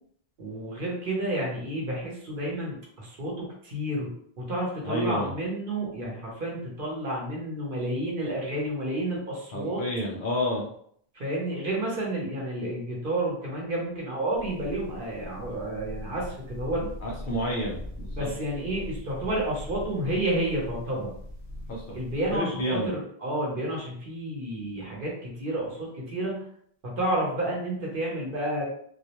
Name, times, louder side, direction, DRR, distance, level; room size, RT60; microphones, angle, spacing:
voice 1, 0.4-9.8 11.1-16.8 18.2-21.1 21.9-26.5 26.8-28.6, right 1 dB, 55° right, -3 dB, 0.9 m, -30 dB
voice 2, 4.8-5.3 9.5-10.6 16.8-18.3 21.7-22.0 22.3-22.9, equal, 60° left, -2 dB, 0.7 m, -30 dB
sound 1, 14.3-22.4, left 1 dB, 85° right, 1.0 m, -41 dB
2.3 x 2.0 x 2.8 m, 0.64 s
omnidirectional pair, 1.1 m